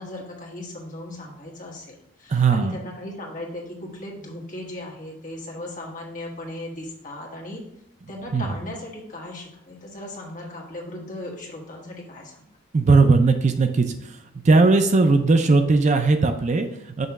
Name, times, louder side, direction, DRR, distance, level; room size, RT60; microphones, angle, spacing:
voice 1, 0.0-7.6 8.1-12.4, left 1 dB, 40° left, -2 dB, 1.5 m, -37 dB
voice 2, 2.3-2.8 8.3-8.5 12.7-14.2 14.4-17.1, right 3 dB, 35° right, 7 dB, 0.4 m, -18 dB
6.5 x 3.0 x 5.8 m, 0.78 s
head